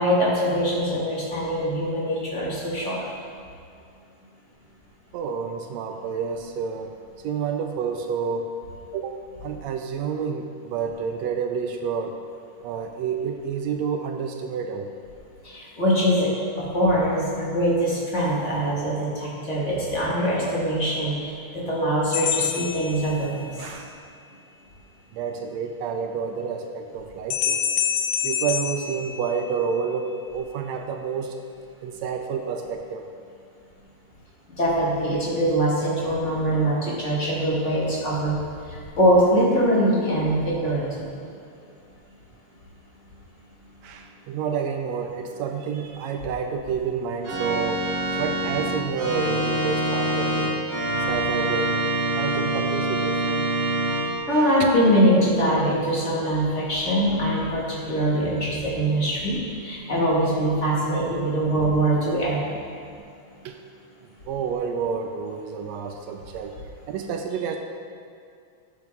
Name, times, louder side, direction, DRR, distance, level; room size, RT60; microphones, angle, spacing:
voice 1, 0.0-3.1 15.4-16.3 16.6-23.5 34.6-38.4 38.7-41.0 54.3-62.5, equal, 30° left, -6 dB, 1.6 m, -23 dB
voice 2, 5.1-7.0 7.2-8.5 8.9-12.2 12.6-14.9 23.6-24.0 25.1-27.6 28.2-31.4 31.8-33.1 43.8-47.9 48.2-50.7 51.0-51.9 52.2-53.5 54.3-54.7 62.9-63.0 63.4-63.6 64.3-66.6 66.9-67.6, right 6 dB, 80° right, 5 dB, 1.6 m, -29 dB
sound 1, 22.1-23.7 27.3-29.8, left 8 dB, 80° left, 1.4 m, -27 dB
Organ, 47.2-54.1, right 1 dB, 45° right, 1.2 m, -25 dB
12.0 x 7.1 x 3.5 m, 2.4 s
omnidirectional pair, 3.4 m